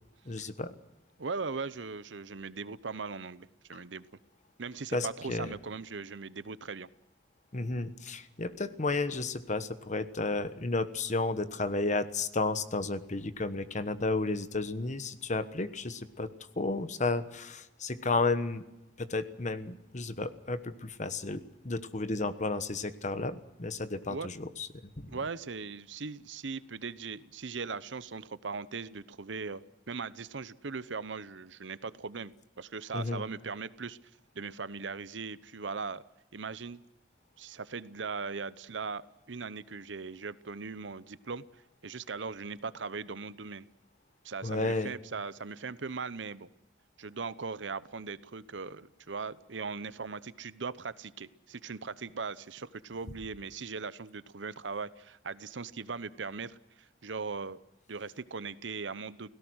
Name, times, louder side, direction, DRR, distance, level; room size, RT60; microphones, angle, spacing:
voice 1, 0.2-0.7 4.9-5.5 7.5-16.3 16.6-18.6 19.0-24.7 25.0-25.1 32.9-33.2 44.4-44.9, left 3 dB, 40° left, 12 dB, 1.2 m, -32 dB
voice 2, 1.2-4.0 4.6-6.9 24.1-24.3 25.1-32.3 32.6-34.0 34.3-36.0 36.3-36.8 37.4-39.0 39.3-43.7 44.2-46.5 47.0-57.6 57.9-59.3, right 4 dB, 85° right, 16 dB, 0.8 m, -39 dB
29.5 x 17.5 x 6.4 m, 0.97 s
head